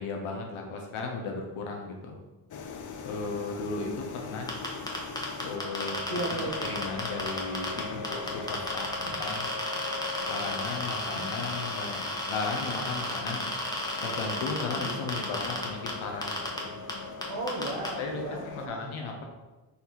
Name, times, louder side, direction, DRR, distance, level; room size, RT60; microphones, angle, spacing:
voice 1, 0.0-2.2 3.0-4.5 5.4-6.2 6.6-9.5 10.3-12.0 12.3-13.5 14.0-16.8 18.0-19.2, left 4 dB, 80° left, 1 dB, 0.8 m, -35 dB
sound 1, 2.5-18.7, left 4 dB, 40° left, 0.5 m, -40 dB
sound 2, 4.5-7.8 8.0-15.9 16.2-16.6 16.9-17.0 17.2-17.9, left 1 dB, 10° left, 1.0 m, -33 dB
voice 2, 6.1-6.7 9.0-9.2 11.0-11.3 14.7-14.9 17.2-18.9, right 2 dB, 75° right, -4 dB, 1.0 m, -36 dB
4.1 x 2.7 x 4.2 m, 1.1 s
cardioid pair, 60°, 48 cm